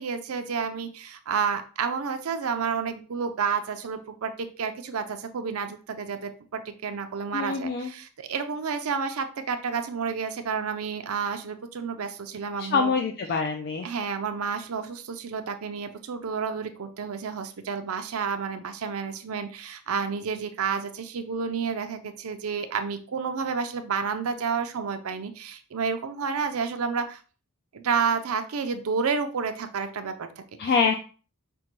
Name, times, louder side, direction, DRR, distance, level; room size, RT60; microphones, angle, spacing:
voice 1, 0.0-13.0 13.8-27.2 27.7-30.3 30.6-30.7, right 5 dB, 85° right, 8 dB, 0.5 m, -30 dB
voice 2, 7.3-7.9 12.6-13.9 30.6-30.9, left 5 dB, 50° left, 3 dB, 0.4 m, -25 dB
5.2 x 2.2 x 3.0 m, 0.38 s
head